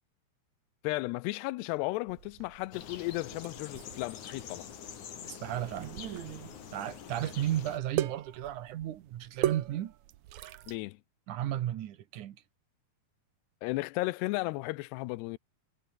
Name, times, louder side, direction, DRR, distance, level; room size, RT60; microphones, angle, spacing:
voice 1, 0.8-4.7 10.7-11.0 13.6-15.4, left 21 dB, 85° left, 2.7 m, -34 dB
sound 1, 2.1-10.8, right 14 dB, 85° right, 1.6 m, -39 dB
sound 2, 2.7-7.8, left 8 dB, 50° left, 3.5 m, -46 dB
voice 2, 5.3-5.9 6.7-9.9 11.3-12.4, right 12 dB, 65° right, 2.2 m, -34 dB
omnidirectional pair, 4.8 m